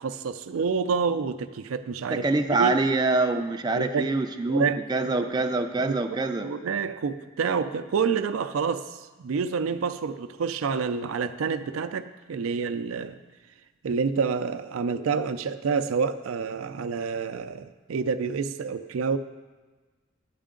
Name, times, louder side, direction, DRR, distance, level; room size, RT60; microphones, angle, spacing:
voice 1, 0.0-2.3 2.6-2.8 3.7-4.1 4.5-4.8 5.2-5.3 5.8-5.9 6.4-13.2 13.8-19.2, right 5 dB, 85° right, 10 dB, 0.4 m, -28 dB
voice 2, 2.1-6.5, right 3 dB, 20° right, 5 dB, 0.4 m, -25 dB
9.3 x 8.1 x 3.8 m, 1.3 s
head